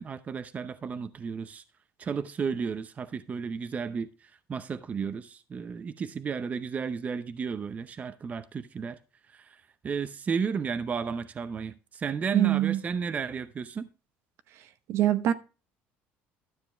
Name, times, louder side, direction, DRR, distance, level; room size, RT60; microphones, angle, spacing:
voice 1, 0.0-1.6 2.0-4.1 4.5-9.0 9.5-9.6 9.8-13.9, right 6 dB, 30° right, 0.7 m, -33 dB
voice 2, 12.3-12.8 14.9-15.3, right 13 dB, 65° right, 0.9 m, -23 dB
12.0 x 6.9 x 3.3 m
cardioid pair, 115°, 5 cm